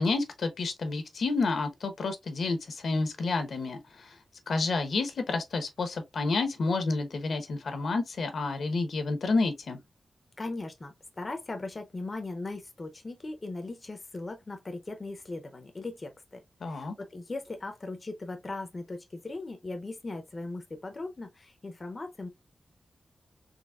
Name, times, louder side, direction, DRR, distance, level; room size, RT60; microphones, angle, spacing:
voice 1, 0.0-4.1 4.5-9.8 16.6-16.9, left 3 dB, 75° left, 0.9 m, -29 dB
voice 2, 10.4-22.3, left 2 dB, 35° left, 0.6 m, -39 dB
4.0 x 3.1 x 2.3 m
wide cardioid pair, 120°, 0 cm